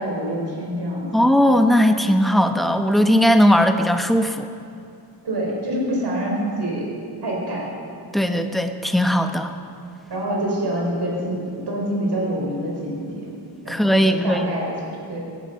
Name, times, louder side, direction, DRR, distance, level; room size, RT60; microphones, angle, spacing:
voice 1, 0.0-1.1 5.2-6.9 7.2-7.7 10.1-13.2 13.6-14.7 15.1-15.2, right 1 dB, 75° right, -2 dB, 4.9 m, -26 dB
voice 2, 1.1-4.5 8.1-9.5 13.7-14.5, equal, ahead, 6 dB, 1.0 m, -18 dB
17.5 x 14.0 x 5.7 m, 2.5 s
wide cardioid pair, 120°, 41 cm